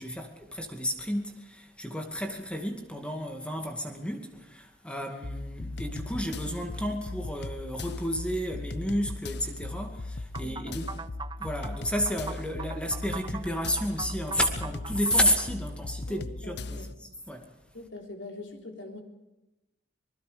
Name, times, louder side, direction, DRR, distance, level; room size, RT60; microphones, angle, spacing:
voice 1, 0.0-10.8 11.4-17.5, equal, 5° left, 2.2 m, -31 dB
sound 1, 5.2-16.9, left 2 dB, 65° left, 0.7 m, -38 dB
sound 2, 10.3-15.5, right 5 dB, 25° right, 0.7 m, -41 dB
voice 2, 10.4-11.0 16.1-16.9 17.7-19.0, left 2 dB, 80° left, 3.9 m, -44 dB
26.5 x 20.0 x 5.1 m
head